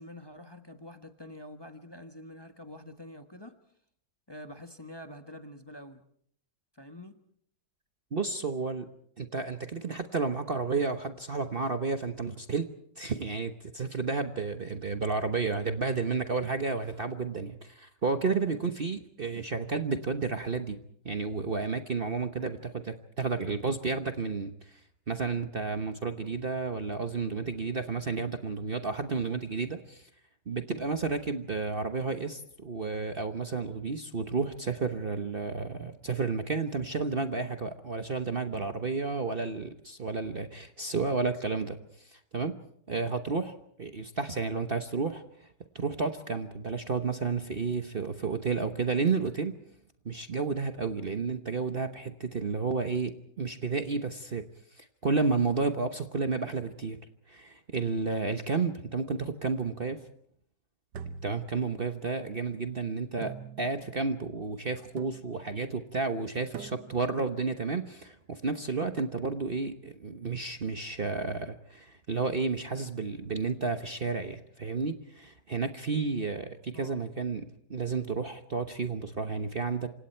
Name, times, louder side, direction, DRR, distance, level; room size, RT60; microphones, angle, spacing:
voice 1, 0.0-3.6 4.3-6.0 6.7-7.2 76.7-77.0, left 1 dB, 15° left, 7 dB, 1.4 m, -46 dB
voice 2, 8.1-8.9 9.2-12.7 13.0-20.8 21.0-24.8 25.1-30.1 30.5-42.5 42.9-45.5 45.7-49.6 50.0-54.5 54.7-57.0 57.3-60.1 61.2-79.9, right 4 dB, 40° right, 8 dB, 1.2 m, -31 dB
sound 1, 60.9-62.1 63.2-64.0 65.0-65.6 66.5-67.2, right 7 dB, 80° right, 1.7 m, -44 dB
28.0 x 26.0 x 4.5 m, 0.65 s
omnidirectional pair, 1.8 m